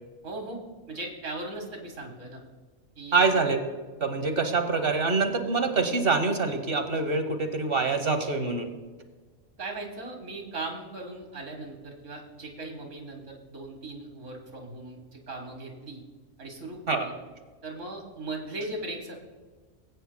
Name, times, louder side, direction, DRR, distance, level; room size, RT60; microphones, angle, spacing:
voice 1, 0.2-0.6 0.9-2.4 3.0-3.4 9.6-16.0 16.4-17.1 17.6-19.2, right 2 dB, 75° right, 2 dB, 2.0 m, -38 dB
voice 2, 3.1-3.6 4.0-8.7 16.9-17.1, right 4 dB, 50° right, 6 dB, 1.2 m, -25 dB
21.0 x 9.1 x 2.2 m, 1.4 s
omnidirectional pair, 1.3 m